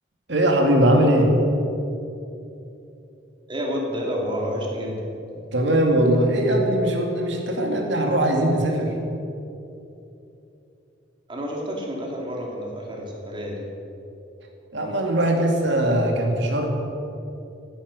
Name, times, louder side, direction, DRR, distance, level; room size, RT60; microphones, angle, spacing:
voice 1, 0.3-1.3 5.5-8.9 14.7-16.7, right 1 dB, 70° right, 2 dB, 2.4 m, -20 dB
voice 2, 3.5-5.1 11.3-13.6, equal, 25° right, -1 dB, 2.9 m, -29 dB
16.0 x 10.0 x 6.7 m, 2.8 s
head